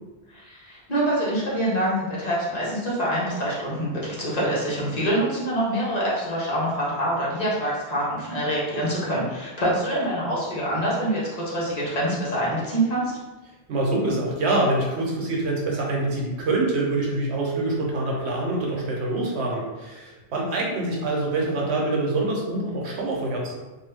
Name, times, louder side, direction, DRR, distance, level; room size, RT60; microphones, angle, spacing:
voice 1, 0.3-13.2, right 1 dB, 40° left, -7 dB, 0.9 m, -25 dB
voice 2, 13.7-23.5, right 2 dB, 75° right, -2 dB, 1.0 m, -25 dB
2.8 x 2.2 x 3.3 m, 1.1 s
omnidirectional pair, 1.1 m